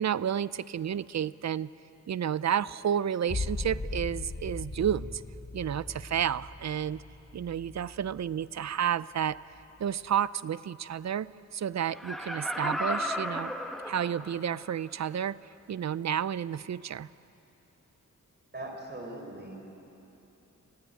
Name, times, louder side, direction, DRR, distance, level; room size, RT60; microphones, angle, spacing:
voice 1, 0.0-1.7 2.1-5.2 5.5-7.0 7.3-9.4 9.8-13.5 13.9-17.1, right 9 dB, 60° right, 18 dB, 0.5 m, -31 dB
sound 1, 3.3-8.7 9.2-9.8, left 3 dB, 35° left, 1.8 m, -39 dB
Laughter, 11.9-14.5 15.0-15.1, equal, ahead, 1.2 m, -34 dB
voice 2, 18.5-19.6, right 1 dB, 35° right, 2 dB, 4.2 m, -40 dB
27.5 x 16.0 x 9.2 m, 3.0 s
wide cardioid pair, 120°, 31 cm